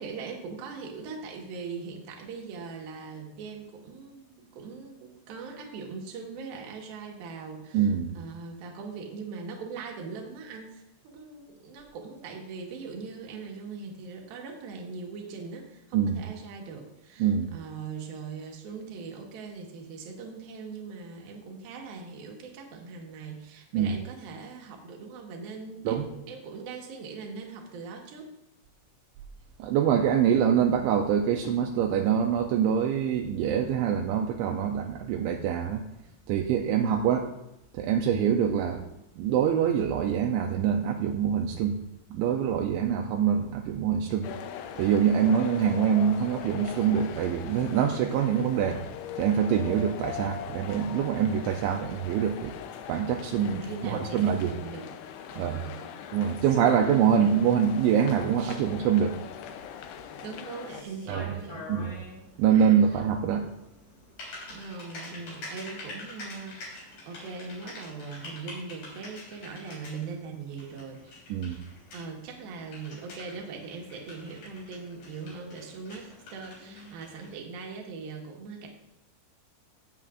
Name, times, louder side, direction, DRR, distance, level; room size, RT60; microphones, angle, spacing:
voice 1, 0.0-28.3 53.4-54.9 55.3-56.0 58.4-58.7 60.2-61.7 62.9-63.0 64.5-71.2 71.9-78.7, right 4 dB, 65° right, 0 dB, 2.8 m, -41 dB
voice 2, 7.7-8.1 15.9-16.2 17.2-17.5 23.7-23.9 25.9-26.0 29.6-35.8 36.3-37.3 37.7-38.9 39.2-41.8 42.1-44.3 44.8-48.8 49.2-52.5 52.9-54.5 55.4-55.6 56.1-59.2 61.1-61.3 61.7-61.9 62.4-63.5 71.3-71.6, right 8 dB, 85° right, 2 dB, 2.8 m, -25 dB
sound 1, 44.2-60.8, left 9 dB, 80° left, 2.5 m, -41 dB
Typing, 59.3-77.4, left 2 dB, 60° left, 5.7 m, -46 dB
18.0 x 7.6 x 2.5 m, 0.85 s
omnidirectional pair, 5.5 m